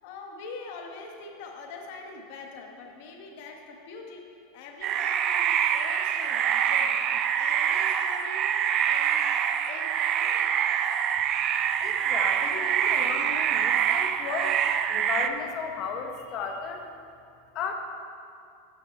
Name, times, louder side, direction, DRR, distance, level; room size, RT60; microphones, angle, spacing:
voice 1, 0.0-4.3 4.5-8.5 8.8-9.3 9.6-10.5, left 4 dB, 65° left, 2 dB, 1.2 m, -43 dB
sound 1, 4.8-15.3, right 9 dB, 40° right, 0.4 m, -25 dB
voice 2, 11.8-14.6 14.9-16.9 17.5-17.7, left 5 dB, 45° left, 3 dB, 0.9 m, -35 dB
9.0 x 7.6 x 4.3 m, 2.5 s
supercardioid pair, 130°, 0 cm